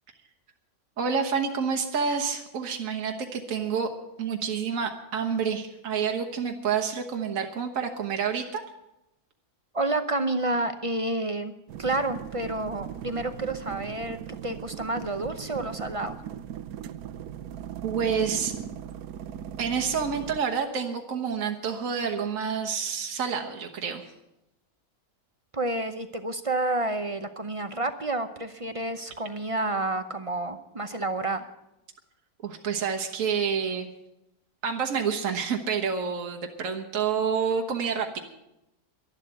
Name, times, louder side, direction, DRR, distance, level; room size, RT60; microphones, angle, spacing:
voice 1, 1.0-3.9 4.2-8.6 17.8-18.5 19.6-24.1 32.4-33.9 34.6-38.2, right 6 dB, 65° right, 3 dB, 1.5 m, -28 dB
voice 2, 9.7-11.5 11.8-16.2 25.5-31.5, right 2 dB, 35° right, 9 dB, 0.6 m, -29 dB
sound 1, 11.7-20.4, right 9 dB, 80° right, 1.2 m, -38 dB
12.0 x 11.5 x 8.1 m, 0.89 s
omnidirectional pair, 1.6 m